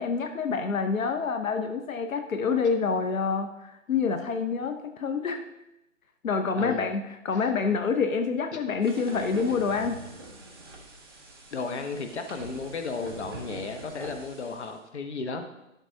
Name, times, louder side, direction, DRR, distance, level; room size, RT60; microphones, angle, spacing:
voice 1, 0.0-5.4 6.2-10.0, left 5 dB, 80° left, 7 dB, 0.8 m, -27 dB
sound 1, 8.8-14.7, right 2 dB, 20° right, 0.7 m, -43 dB
voice 2, 11.5-15.4, left 4 dB, 55° left, 6 dB, 1.0 m, -34 dB
12.5 x 6.0 x 2.8 m, 0.93 s
hypercardioid pair, 170°, 40 cm